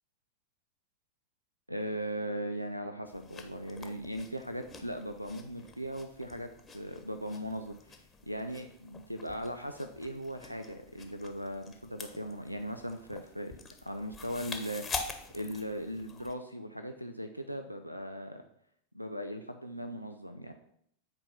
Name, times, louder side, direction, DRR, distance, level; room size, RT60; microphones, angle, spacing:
voice 1, 1.7-13.6 13.8-15.0 15.3-18.4 18.9-20.5, equal, 90° right, 7 dB, 0.5 m, -38 dB
sound 1, 3.0-16.3, left 4 dB, 20° left, 1.1 m, -46 dB
8.8 x 4.6 x 5.8 m, 0.70 s
figure-of-eight pair, 90°, 0 cm